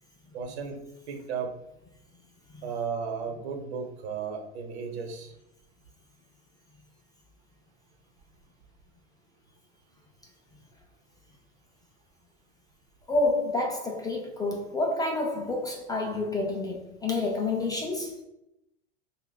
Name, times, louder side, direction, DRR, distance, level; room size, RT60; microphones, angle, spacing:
voice 1, 0.3-0.8 1.1-1.6 2.6-5.3, right 6 dB, 75° right, 1.0 m, -34 dB
voice 2, 13.1-18.2, left 2 dB, 10° left, 0.3 m, -29 dB
5.3 x 2.3 x 2.2 m
hypercardioid pair, 115°, 32 cm